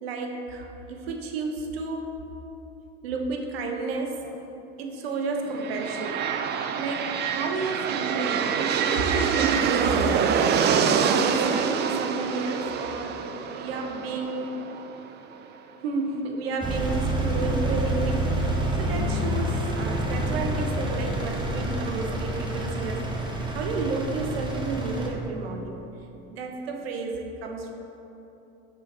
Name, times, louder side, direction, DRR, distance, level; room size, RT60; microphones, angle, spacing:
voice 1, 0.0-2.2 3.0-4.4 4.8-6.3 6.8-10.3 11.0-14.5 15.8-18.3 18.8-25.9 26.3-27.7, right 3 dB, 90° right, 3 dB, 0.7 m, -31 dB
sound 1, 5.5-15.3, right 7 dB, 35° right, 0.4 m, -26 dB
Engine, 16.6-25.1, right 1 dB, 15° right, 1.0 m, -28 dB
5.7 x 3.8 x 4.7 m, 3.0 s
hypercardioid pair, 90°, 29 cm